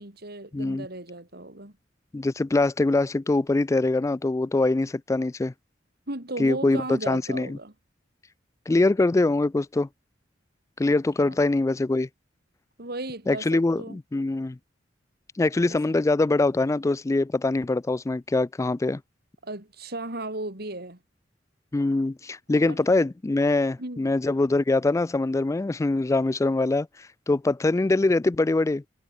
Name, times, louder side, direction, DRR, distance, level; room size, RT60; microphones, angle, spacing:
voice 1, 0.0-1.7 6.1-7.7 11.2-11.4 12.8-14.0 15.7-16.0 19.4-21.0 22.5-22.8 23.8-24.1, right 2 dB, 60° right, 4.5 m, -36 dB
voice 2, 0.5-0.9 2.1-5.5 6.4-7.6 8.7-9.9 10.8-12.1 13.3-14.6 15.4-19.0 21.7-26.9 27.3-28.8, left 2 dB, 15° left, 0.3 m, -23 dB
head